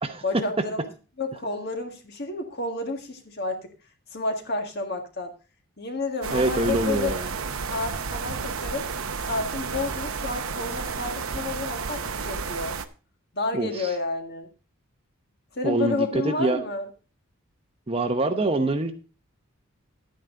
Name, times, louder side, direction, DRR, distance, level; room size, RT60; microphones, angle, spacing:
voice 1, 0.2-0.8 1.2-3.7 4.1-5.3 5.8-7.2 7.7-8.9 9.2-12.8 13.3-14.5 15.5-16.9, left 3 dB, 50° left, 4 dB, 1.8 m, -30 dB
sound 1, 6.2-12.9, right 5 dB, 75° right, 0.9 m, -31 dB
voice 2, 6.3-7.3 13.5-13.9 15.6-16.6 17.9-18.9, right 2 dB, 25° right, 7 dB, 0.8 m, -25 dB
11.5 x 9.3 x 3.8 m, 0.35 s
head